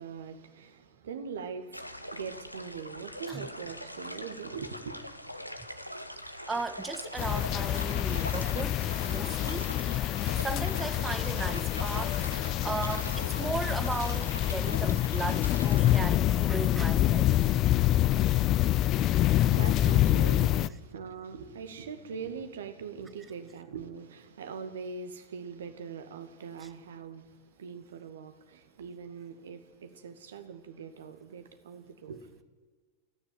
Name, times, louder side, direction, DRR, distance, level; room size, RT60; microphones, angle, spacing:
voice 1, 0.0-5.0 18.9-32.3, right 6 dB, 65° right, 2.1 m, -42 dB
sound 1, 1.7-16.1, equal, 90° left, 1.3 m, -42 dB
voice 2, 6.5-17.3 19.1-19.5 26.6-26.7, right 4 dB, 15° right, 0.7 m, -37 dB
sound 2, 7.2-20.7, left 13 dB, 35° left, 0.6 m, -26 dB
28.5 x 10.5 x 9.4 m
figure-of-eight pair, 90°, 0 cm